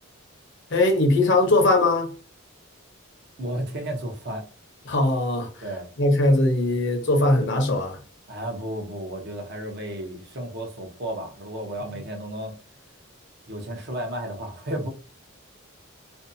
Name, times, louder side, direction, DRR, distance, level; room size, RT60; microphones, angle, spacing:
voice 1, 0.7-2.1 4.9-5.5 6.0-8.0, left 2 dB, 55° left, 0.7 m, -20 dB
voice 2, 3.4-4.5 5.6-5.9 8.3-12.5 13.5-14.9, right 1 dB, 50° right, 0.7 m, -33 dB
2.6 x 2.2 x 2.5 m
head